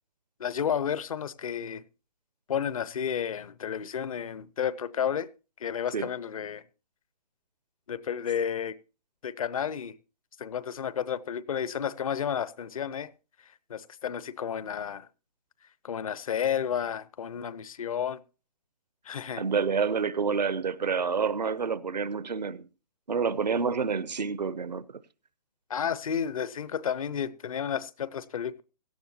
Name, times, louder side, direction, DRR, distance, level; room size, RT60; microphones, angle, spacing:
voice 1, 0.4-1.8 2.5-5.3 5.6-6.6 7.9-8.8 9.2-10.0 10.4-13.1 13.7-15.1 15.8-18.2 19.1-19.4 25.7-28.6, left 8 dB, 55° left, 0.8 m, -31 dB
voice 2, 19.4-22.7 23.1-24.8, right 5 dB, 80° right, 0.8 m, -28 dB
17.0 x 12.0 x 2.8 m
figure-of-eight pair, 140°, 21 cm